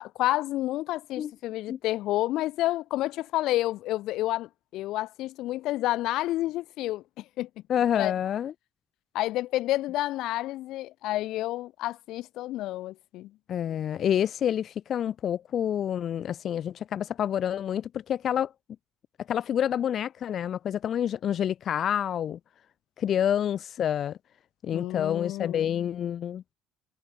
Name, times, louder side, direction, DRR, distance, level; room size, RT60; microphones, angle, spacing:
voice 1, 0.0-7.5 7.9-8.1 9.1-13.3 24.7-25.7, left 16 dB, 60° left, 3.2 m, -30 dB
voice 2, 7.7-8.5 13.5-18.5 19.3-22.4 23.0-24.2 24.6-26.4, left 9 dB, 40° left, 2.3 m, -28 dB
cardioid pair, 160°, 0 cm